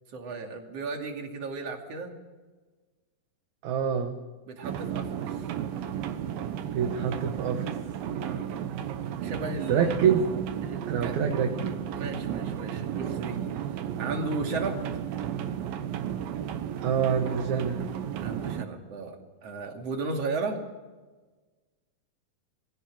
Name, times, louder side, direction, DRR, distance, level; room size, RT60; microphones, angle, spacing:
voice 1, 0.1-2.1 4.5-5.1 8.2-8.5 9.2-9.9 10.6-11.2 11.9-13.4 14.0-14.9 18.2-19.2 19.4-20.6, right 3 dB, 45° right, 2 dB, 3.3 m, -34 dB
voice 2, 3.6-4.2 6.7-7.7 9.7-10.2 10.9-11.5 16.8-17.8, right 7 dB, 65° right, 4 dB, 2.5 m, -26 dB
sound 1, 4.6-18.6, right 9 dB, 85° right, 2.9 m, -33 dB
23.0 x 16.0 x 7.6 m, 1.3 s
omnidirectional pair, 4.1 m